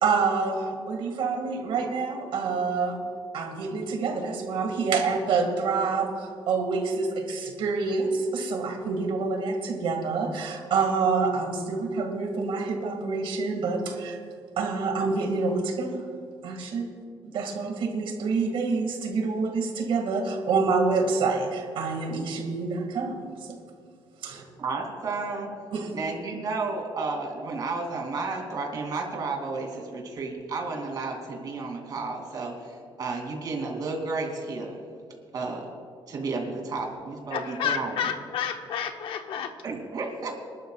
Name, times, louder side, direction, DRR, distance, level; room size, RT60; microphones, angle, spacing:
voice 1, 0.0-14.2 14.6-16.1 16.4-16.9 17.2-23.6 24.2-24.4 25.7-26.0, right 4 dB, 75° right, 3 dB, 2.1 m, -27 dB
voice 2, 24.6-25.5 25.9-34.8 35.3-35.6 36.1-37.9 39.6-40.3, right 3 dB, 45° right, 1 dB, 2.8 m, -32 dB
voice 3, 37.3-39.6, left 8 dB, 85° left, 6 dB, 1.0 m, -30 dB
27.0 x 12.0 x 2.4 m, 2.2 s
cardioid pair, 165°, 9 cm